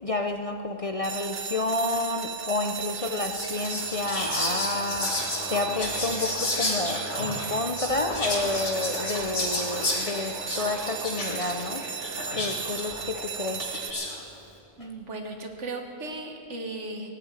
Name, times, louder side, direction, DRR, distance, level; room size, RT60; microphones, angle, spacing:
voice 1, 0.0-11.8 12.3-13.7, left 2 dB, 40° left, 5 dB, 0.6 m, -30 dB
sound 1, 1.0-13.9, right 7 dB, 60° right, 1.0 m, -36 dB
Whispering, 2.9-14.2, left 2 dB, 75° left, 2.7 m, -32 dB
voice 2, 14.8-17.1, right 2 dB, 75° right, 4 dB, 1.9 m, -36 dB
18.0 x 8.9 x 9.0 m, 2.5 s
omnidirectional pair, 1.2 m